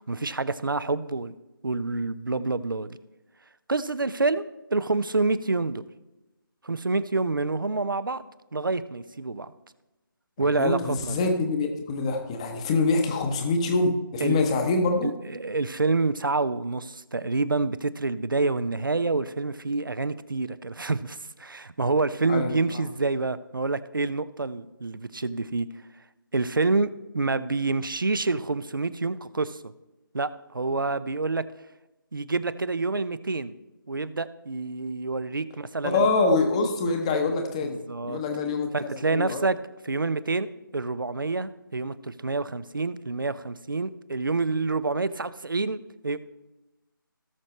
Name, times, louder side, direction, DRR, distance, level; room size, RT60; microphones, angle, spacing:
voice 1, 0.0-1.3 1.6-3.0 3.7-4.4 4.7-5.8 6.6-8.2 8.5-9.5 10.4-11.3 14.2-14.4 15.0-25.7 26.3-29.7 30.1-31.4 32.1-33.5 33.9-36.1 37.9-38.2 38.7-39.6 39.8-46.2, right 3 dB, 70° right, 15 dB, 0.7 m, -27 dB
voice 2, 10.4-15.1 22.3-22.9 35.8-37.8 38.0-39.4, left 3 dB, 15° left, 5 dB, 0.9 m, -25 dB
18.0 x 6.4 x 3.1 m, 1.0 s
figure-of-eight pair, 155°, 12 cm